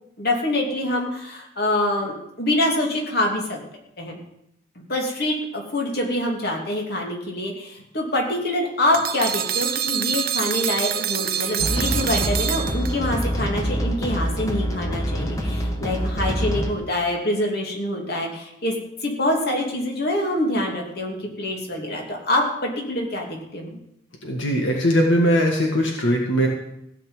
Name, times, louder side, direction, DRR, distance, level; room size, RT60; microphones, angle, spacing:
voice 1, 0.2-3.6 4.0-4.2 4.9-18.7 19.0-23.8, left 1 dB, 55° left, 0 dB, 2.9 m, -25 dB
sound 1, 8.9-13.2, right 9 dB, 50° right, 0.6 m, -26 dB
sound 2, 11.6-16.7, equal, 20° left, 1.5 m, -25 dB
voice 2, 24.2-26.5, equal, 85° left, 0 dB, 2.0 m, -20 dB
16.5 x 5.9 x 8.9 m, 0.81 s
head